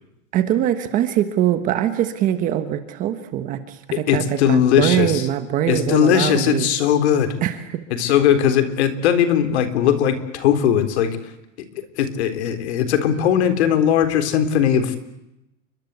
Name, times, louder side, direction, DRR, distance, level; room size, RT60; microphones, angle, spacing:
voice 1, 0.3-6.7 7.4-8.1, right 11 dB, 20° right, 10 dB, 1.3 m, -23 dB
voice 2, 3.9-5.3 5.7-7.3 7.9-11.2 11.8-15.0, left 9 dB, 55° left, 10 dB, 3.9 m, -19 dB
29.5 x 23.5 x 8.2 m, 0.88 s
supercardioid pair, 180°, 40 cm